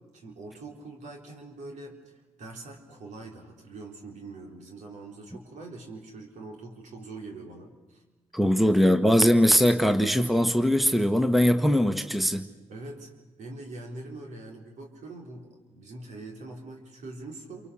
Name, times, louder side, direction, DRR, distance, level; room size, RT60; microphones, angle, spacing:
voice 1, 0.0-2.0 2.4-8.0 12.7-13.1 13.4-17.7, right 2 dB, 75° right, 1 dB, 3.9 m, -43 dB
voice 2, 8.3-12.4, equal, ahead, 8 dB, 1.4 m, -21 dB
28.0 x 24.0 x 6.5 m, 1.1 s
supercardioid pair, 55°, 12 cm